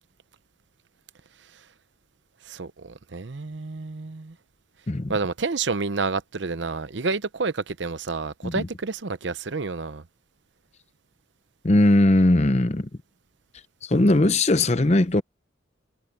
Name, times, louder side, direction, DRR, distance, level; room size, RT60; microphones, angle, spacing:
voice 1, 2.5-4.3 5.1-10.0, right 4 dB, 75° right, 0.8 m, -29 dB
voice 2, 11.6-12.9 13.8-15.2, left 1 dB, 35° left, 0.7 m, -19 dB
head